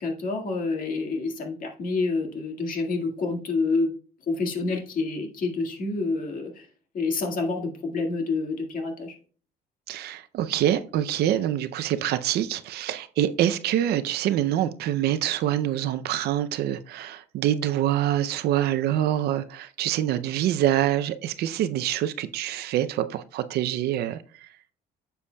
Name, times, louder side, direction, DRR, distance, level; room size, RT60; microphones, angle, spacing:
voice 1, 0.0-3.9 4.3-6.7 6.9-9.2, left 3 dB, 55° left, 1.8 m, -28 dB
voice 2, 9.9-24.2, right 12 dB, 70° right, 0.5 m, -25 dB
9.6 x 6.9 x 2.2 m
cardioid pair, 110°, 17 cm